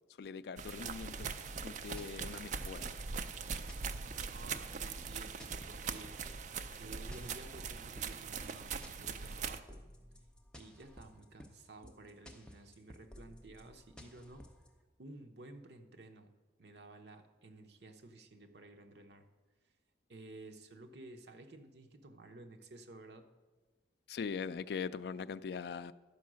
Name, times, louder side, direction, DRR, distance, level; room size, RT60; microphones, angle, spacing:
voice 1, 0.0-2.9 24.1-25.9, left 6 dB, 65° left, 0.3 m, -42 dB
sound 1, 0.6-9.6, right 5 dB, 45° right, 0.4 m, -41 dB
sound 2, 1.1-14.7, equal, 5° left, 0.6 m, -55 dB
voice 2, 4.3-6.1 6.8-9.8 10.6-14.5 15.0-16.3 16.6-19.3 20.1-23.3, right 2 dB, 75° right, 0.8 m, -53 dB
11.0 x 4.7 x 6.2 m
head